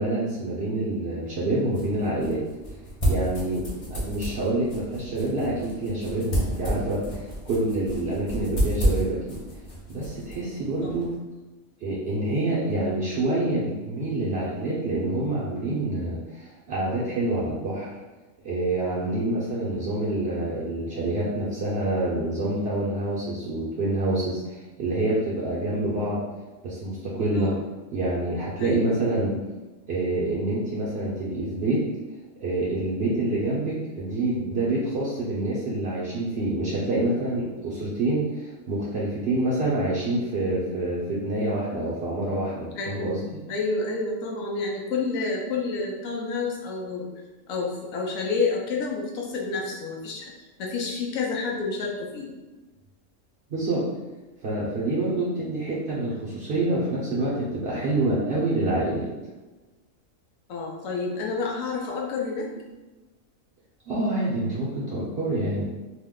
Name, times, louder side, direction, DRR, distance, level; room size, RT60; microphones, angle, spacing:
voice 1, 0.0-2.4 3.1-9.4 9.9-11.1 11.8-17.9 18.4-26.2 26.6-27.5 27.9-29.3 29.9-31.8 32.4-43.2 53.5-53.9 54.4-59.1 63.9-65.6, right 2 dB, 60° right, -7 dB, 0.7 m, -27 dB
sound 1, 1.2-11.1, equal, 35° left, 0.6 m, -31 dB
voice 2, 28.6-28.9 42.7-47.1 47.5-50.3 50.6-52.3 60.5-62.5, left 4 dB, 90° left, -1 dB, 1.0 m, -29 dB
2.8 x 2.1 x 3.6 m, 1.2 s
omnidirectional pair, 1.4 m